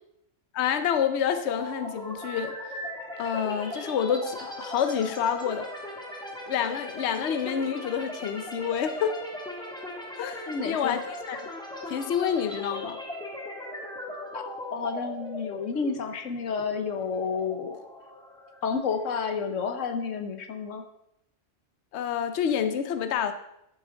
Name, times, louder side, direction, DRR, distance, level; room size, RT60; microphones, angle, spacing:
voice 1, 0.5-2.6 3.2-5.7 6.5-9.2 10.1-11.0 11.3-11.5 11.9-13.0 21.9-23.3, left 8 dB, 65° left, 9 dB, 0.9 m, -28 dB
sound 1, 1.5-19.2, left 1 dB, 5° left, 1.4 m, -39 dB
voice 2, 10.5-11.0 14.3-14.4 14.7-17.8 18.6-20.8, left 5 dB, 90° left, 7 dB, 1.3 m, -30 dB
12.5 x 7.5 x 3.8 m, 0.80 s
omnidirectional pair, 1.3 m